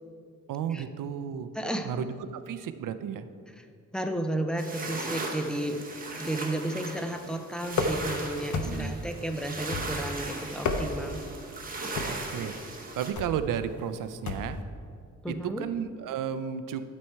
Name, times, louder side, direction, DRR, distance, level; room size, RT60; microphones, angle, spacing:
voice 1, 0.5-1.5 1.8-3.3 8.6-8.9 12.1-12.5 12.9-14.6 15.3-16.8, right 8 dB, 85° right, 11 dB, 0.5 m, -33 dB
voice 2, 1.5-1.9 3.6-3.7 3.9-5.8 6.2-11.2 15.2-15.6, right 1 dB, 5° left, 5 dB, 0.4 m, -33 dB
sound 1, 4.6-13.1, right 2 dB, 25° right, 0.9 m, -38 dB
sound 2, 7.7-8.2 8.5-9.0 9.7-10.2 10.5-11.2 11.9-12.3 13.2-13.4 14.3-14.6, left 3 dB, 65° left, 0.7 m, -31 dB
11.5 x 4.3 x 4.5 m, 2.2 s
wide cardioid pair, 150°, 31 cm